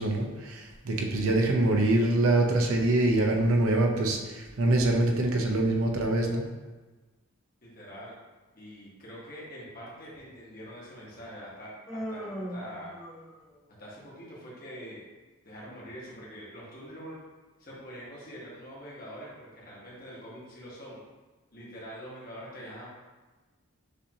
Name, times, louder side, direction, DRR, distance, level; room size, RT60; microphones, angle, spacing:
voice 1, 0.0-6.4, right 2 dB, 85° right, 1 dB, 0.7 m, -25 dB
voice 2, 7.6-8.2 8.5-13.0 13.8-15.1 15.4-17.2 17.6-21.0 21.5-22.9, equal, 45° left, -6 dB, 1.3 m, -44 dB
Human voice, 11.9-13.6, equal, 5° right, 0.6 m, -38 dB
6.6 x 2.7 x 2.9 m, 1.2 s
head